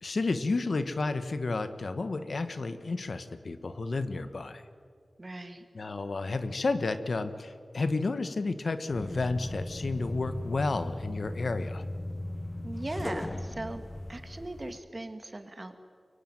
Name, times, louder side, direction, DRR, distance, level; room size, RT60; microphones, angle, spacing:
voice 1, 0.0-4.6 5.7-11.8, left 3 dB, 70° left, 11 dB, 1.4 m, -31 dB
voice 2, 5.2-5.7 12.6-13.8 14.1-15.8, right 2 dB, 40° right, 8 dB, 2.3 m, -39 dB
sound 1, 8.9-14.8, left 1 dB, 30° left, 1.0 m, -38 dB
23.5 x 23.5 x 9.3 m, 2.1 s
wide cardioid pair, 50°, 0 cm